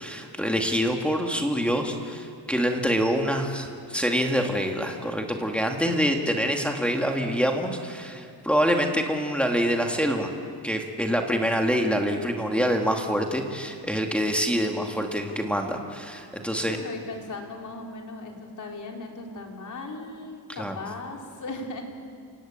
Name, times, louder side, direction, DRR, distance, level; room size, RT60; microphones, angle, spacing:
voice 1, 0.0-10.3 10.6-16.8 20.6-20.8, equal, 5° left, 2 dB, 2.1 m, -26 dB
voice 2, 16.6-21.8, left 3 dB, 50° left, 1 dB, 4.1 m, -37 dB
28.5 x 17.0 x 8.9 m, 2.4 s
cardioid pair, 120°, 40 cm